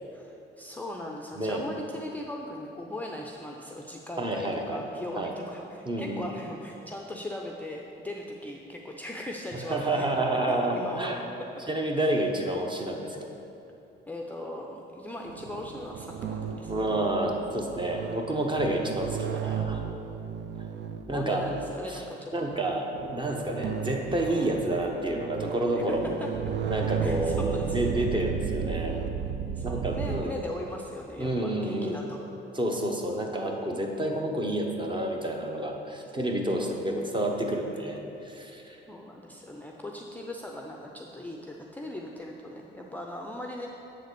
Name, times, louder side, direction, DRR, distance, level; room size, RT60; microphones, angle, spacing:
voice 1, 0.1-10.1 10.7-11.1 11.4-11.6 11.9-12.1 14.1-16.8 21.1-22.3 25.9-26.3 27.0-27.9 29.5-32.2 36.6-36.8 38.9-43.7, left 1 dB, 10° left, 0 dB, 0.5 m, -39 dB
voice 2, 4.2-4.8 5.2-5.3 5.8-6.3 9.5-11.2 11.7-13.2 16.7-19.8 21.1-21.5 21.9-22.0 22.3-26.0 26.7-29.0 29.6-30.4 31.2-32.0 32.5-38.8, right 1 dB, 25° right, 1 dB, 0.9 m, -29 dB
sound 1, 15.3-21.9 22.5-22.6 22.9-30.2, right 8 dB, 65° right, 0.5 m, -34 dB
7.4 x 4.0 x 6.7 m, 2.8 s
cardioid pair, 90°, 20 cm